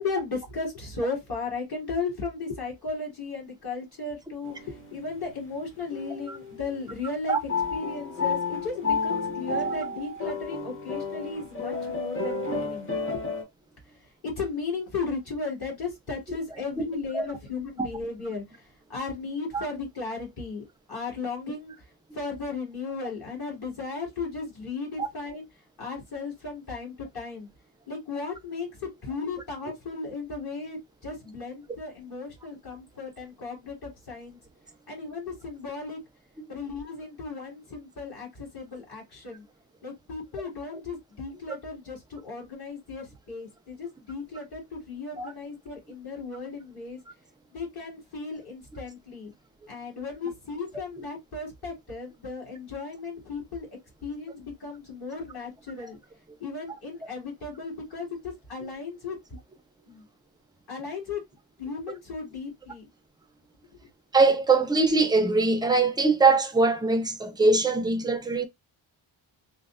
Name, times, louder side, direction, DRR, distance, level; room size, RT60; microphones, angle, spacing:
voice 1, 0.0-7.4 7.7-12.9 13.1-13.2 13.9-21.9 22.1-25.4 25.8-27.5 27.9-34.4 34.9-36.0 36.5-39.4 39.8-47.0 47.5-49.3 49.7-53.7 54.0-56.0 56.4-59.2 59.9-60.1 60.7-61.2 61.6-62.9, left 4 dB, 50° left, 1.9 m, -35 dB
sound 1, 4.4-5.2 5.9-6.5 7.5-13.4, left 4 dB, 25° left, 0.9 m, -31 dB
voice 2, 64.1-68.5, right 3 dB, 10° right, 0.4 m, -22 dB
3.2 x 2.1 x 2.4 m
wide cardioid pair, 125°, 48 cm